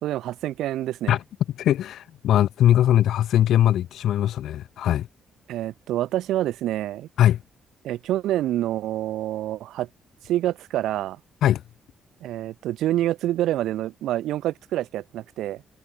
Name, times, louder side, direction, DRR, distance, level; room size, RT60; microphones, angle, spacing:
voice 1, 0.0-1.2 5.5-7.1 7.8-9.9 10.2-11.2 12.2-15.6, right 13 dB, 85° right, 0.8 m, -27 dB
voice 2, 1.6-5.1 7.2-7.4 11.4-11.6, left 11 dB, 75° left, 0.5 m, -20 dB
cardioid pair, 110°, 0 cm